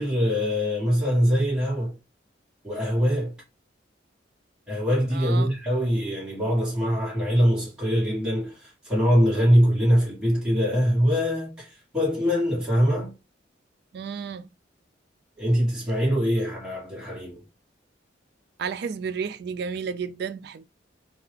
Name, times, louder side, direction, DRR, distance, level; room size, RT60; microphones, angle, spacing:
voice 1, 0.0-2.0 2.6-3.3 4.7-13.1 15.4-17.4, equal, 5° right, 1.6 m, -23 dB
voice 2, 5.1-5.5 13.9-14.5 18.6-20.7, right 6 dB, 60° right, 0.3 m, -32 dB
2.8 x 2.3 x 3.3 m
head